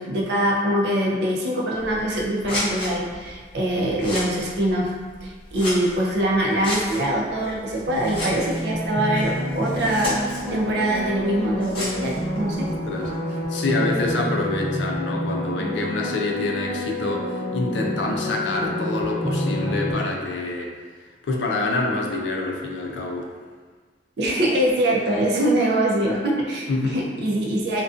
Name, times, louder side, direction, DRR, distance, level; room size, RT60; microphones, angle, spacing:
voice 1, 0.0-4.9 5.2-10.2 10.5-12.7 24.2-27.8, right 1 dB, 70° right, -3 dB, 0.5 m, -23 dB
Scissors, 1.7-13.2, left 1 dB, 30° left, 0.8 m, -35 dB
Absolute Synth, 7.9-19.9, left 1 dB, 20° right, 0.7 m, -28 dB
voice 2, 13.5-20.7 21.2-23.3 26.7-27.0, left 2 dB, 85° left, 0 dB, 0.4 m, -26 dB
2.4 x 2.2 x 2.4 m, 1.5 s
head